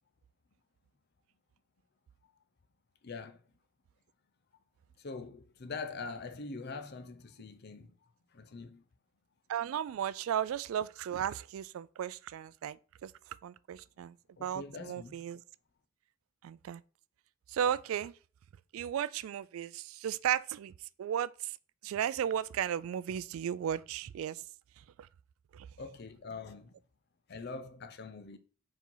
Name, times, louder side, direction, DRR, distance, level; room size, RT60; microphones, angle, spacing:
voice 1, 3.0-3.4 5.0-7.9 8.3-8.8 14.4-15.1 25.8-26.7 27.3-28.4, left 4 dB, 50° left, 0.6 m, -43 dB
voice 2, 9.5-12.8 13.0-14.2 14.4-15.4 16.4-16.8 17.5-18.1 18.7-20.7 21.0-21.6 21.8-24.4 25.5-25.7, right 9 dB, 80° right, 0.3 m, -35 dB
4.8 x 4.3 x 5.4 m
head